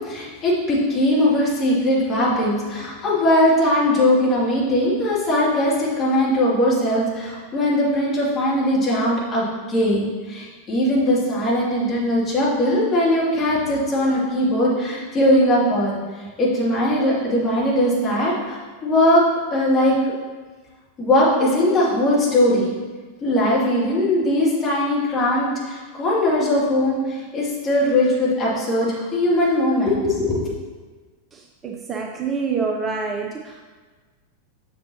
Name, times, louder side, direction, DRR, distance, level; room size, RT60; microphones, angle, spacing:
voice 1, 0.0-19.2 19.5-20.0 21.0-22.7 23.2-30.5, left 1 dB, 25° left, -6 dB, 2.2 m, -20 dB
voice 2, 31.3-33.6, right 5 dB, 20° right, 2 dB, 0.5 m, -27 dB
7.6 x 6.4 x 2.8 m, 1.4 s
figure-of-eight pair, 90°, 0 cm